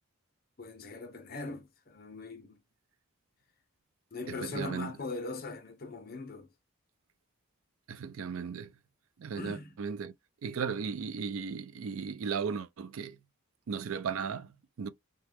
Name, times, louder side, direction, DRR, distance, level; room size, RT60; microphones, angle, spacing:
voice 1, 0.6-2.6 4.1-6.5 9.4-9.8, left 3 dB, 40° left, 0.6 m, -40 dB
voice 2, 4.3-4.9 7.9-8.7 9.2-10.1 10.4-13.2 13.7-14.9, right 6 dB, 70° right, 0.4 m, -36 dB
2.9 x 2.2 x 3.3 m
head